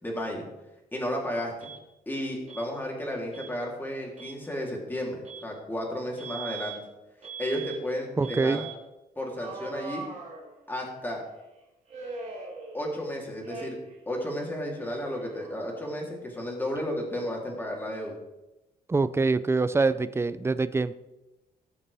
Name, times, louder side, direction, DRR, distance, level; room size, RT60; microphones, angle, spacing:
voice 1, 0.0-0.4 0.9-1.7 2.1-6.8 7.4-8.6 9.1-10.0 10.7-11.2 12.7-13.8 14.1-18.2, equal, 10° left, -2 dB, 3.1 m, -33 dB
Alarm, 1.6-1.8 2.5-2.7 3.3-3.5 4.1-4.4 5.2-5.5 6.2-6.8 7.2-7.8 8.2-8.8 9.3-10.9 11.9-13.1 13.4-14.0 14.2-16.0, right 5 dB, 45° right, 4.5 m, -41 dB
voice 2, 8.2-8.7 18.9-20.9, right 3 dB, 15° right, 14 dB, 0.5 m, -25 dB
18.0 x 7.0 x 3.4 m, 0.99 s
cardioid pair, 120°, 17 cm